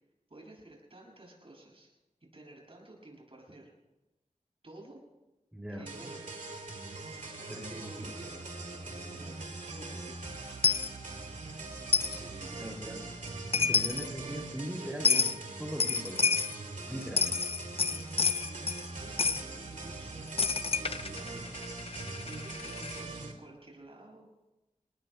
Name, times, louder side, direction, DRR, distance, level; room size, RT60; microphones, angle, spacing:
voice 1, 0.3-1.9 2.3-3.7 4.6-5.0 5.7-6.3 7.1-10.2 11.5-11.6 11.8-13.2 18.8-20.2 20.5-21.9 22.2-24.3, right 2 dB, 45° right, -2 dB, 6.7 m, -52 dB
voice 2, 5.5-5.8 7.5-8.0 12.6-12.9 13.6-16.3 16.9-17.3, equal, 5° right, -2 dB, 2.7 m, -40 dB
sound 1, 5.8-23.3, right 3 dB, 75° right, 2.9 m, -42 dB
Coin (dropping), 10.6-10.9 11.9-12.2 13.3-13.4 13.5-14.1 15.0-15.4 15.8-16.6 17.0-18.9 19.2-19.4 20.4-23.0, left 5 dB, 45° left, 0.5 m, -29 dB
29.0 x 19.0 x 2.2 m, 1.0 s
wide cardioid pair, 85°, 13 cm